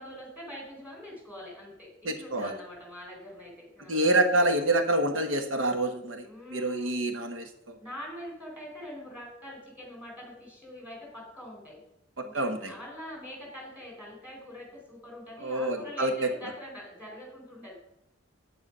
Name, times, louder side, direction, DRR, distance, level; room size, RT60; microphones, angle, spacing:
voice 1, 0.0-4.1 6.2-7.0 7.8-11.8 12.2-17.8, equal, 5° right, -2 dB, 4.3 m, -44 dB
voice 2, 2.0-2.5 3.9-7.8 12.2-12.7 15.4-16.3, right 1 dB, 85° right, 7 dB, 1.2 m, -27 dB
9.1 x 7.8 x 5.5 m, 0.86 s
head